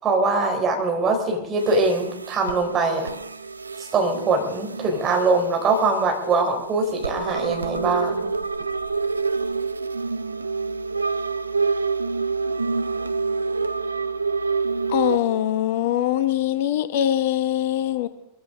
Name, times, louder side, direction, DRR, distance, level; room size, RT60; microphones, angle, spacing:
voice 1, 0.0-3.1 3.8-8.3, right 3 dB, 25° right, 2 dB, 3.9 m, -22 dB
sound 1, 1.6-15.2, right 4 dB, 80° right, 0.5 m, -27 dB
voice 2, 14.9-18.1, left 11 dB, 55° left, 11 dB, 1.0 m, -22 dB
24.0 x 15.5 x 3.7 m, 0.82 s
figure-of-eight pair, 90°, 0 cm